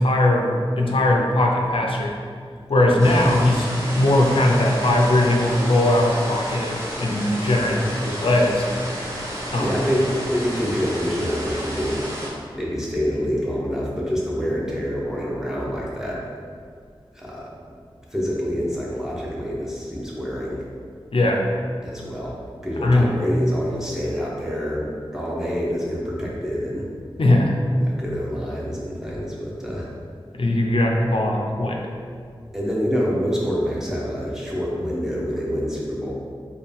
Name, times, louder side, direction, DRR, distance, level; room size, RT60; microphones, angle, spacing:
voice 1, 0.0-2.1 2.7-3.7 4.0-6.7 7.0-8.7 9.5-9.8 21.1-21.4 22.8-23.1 27.2-27.6 30.3-31.8, left 1 dB, 70° left, 0 dB, 0.5 m, -19 dB
voice 2, 3.0-3.4 7.6-7.8 9.6-12.0 12.5-16.2 17.1-17.5 18.1-20.6 21.8-22.4 22.6-26.9 27.8-29.9 32.5-36.1, equal, 5° right, -5 dB, 0.9 m, -26 dB
sound 1, 3.0-12.3, equal, 30° right, 0.9 m, -31 dB
4.4 x 2.3 x 3.4 m, 2.2 s
wide cardioid pair, 60°, 10 cm